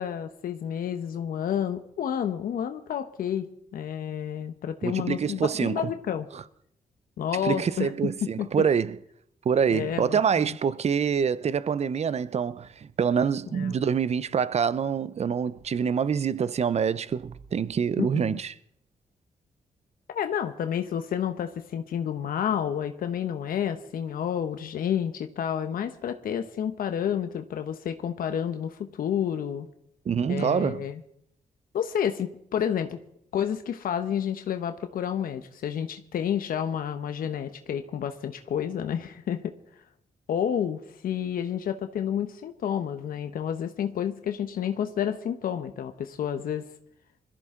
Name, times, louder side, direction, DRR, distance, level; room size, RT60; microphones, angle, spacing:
voice 1, 0.0-3.5 3.7-6.3 7.2-7.9 8.4-8.5 9.7-10.6 13.5-13.8 18.0-18.4 20.1-29.7 30.3-31.0 31.7-33.0 33.3-39.5 40.3-46.7, left 9 dB, 85° left, 1.0 m, -30 dB
voice 2, 4.8-5.9 6.3-6.4 7.4-9.0 9.4-18.5 30.1-30.9, right 7 dB, 50° right, 0.6 m, -26 dB
21.0 x 14.0 x 3.7 m
cardioid pair, 75°, 14 cm